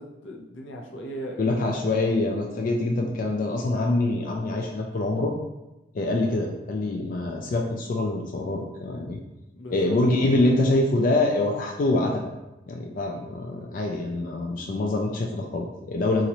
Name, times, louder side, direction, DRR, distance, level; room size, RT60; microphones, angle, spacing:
voice 1, 0.0-1.6 6.2-6.4 9.5-10.3, right 1 dB, 85° left, 1 dB, 0.7 m, -38 dB
voice 2, 1.4-5.3 5.9-9.2 9.7-12.3 12.7-16.3, left 2 dB, 45° left, 1 dB, 0.3 m, -25 dB
2.9 x 2.5 x 4.1 m, 1.0 s
head